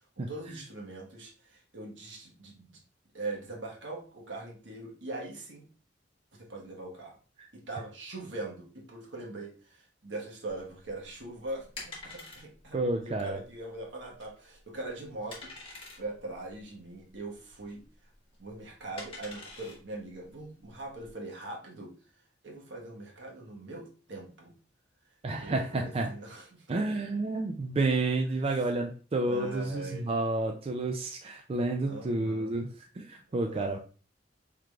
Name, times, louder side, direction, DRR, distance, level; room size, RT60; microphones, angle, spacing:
voice 1, 0.2-2.8 3.1-5.7 6.3-7.2 7.5-12.8 13.0-17.8 18.4-21.9 22.4-24.5 25.4-26.7 28.5-28.6 29.2-30.1 31.8-32.6 33.4-33.8, right 2 dB, 70° right, 0 dB, 1.2 m, -41 dB
sound 1, 10.5-21.1, left 3 dB, 30° left, 1.2 m, -48 dB
voice 2, 12.7-13.4 25.2-26.1 26.7-33.8, right 2 dB, 30° right, 3 dB, 0.4 m, -30 dB
4.7 x 3.6 x 2.3 m, 0.38 s
head